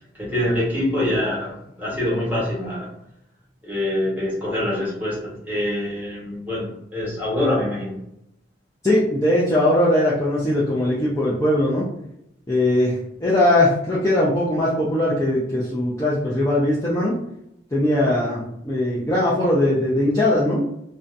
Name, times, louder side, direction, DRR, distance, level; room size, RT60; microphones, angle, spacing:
voice 1, 0.2-2.9 3.6-8.0, left 1 dB, 10° right, -7 dB, 1.1 m, -25 dB
voice 2, 8.8-11.8 12.5-17.2 17.7-20.6, left 1 dB, 15° left, -8 dB, 0.4 m, -20 dB
2.7 x 2.2 x 2.5 m, 0.78 s
head